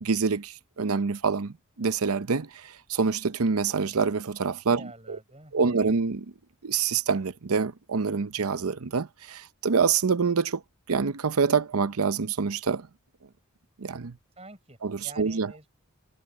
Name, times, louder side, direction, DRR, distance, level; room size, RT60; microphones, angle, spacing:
voice 1, 0.0-5.2 5.5-6.3 6.6-10.6 10.9-12.9 13.8-14.2 14.8-15.5, right 5 dB, 90° right, 0.7 m, -26 dB
voice 2, 4.7-6.0 14.4-15.7, right 2 dB, 30° right, 6.3 m, -48 dB
head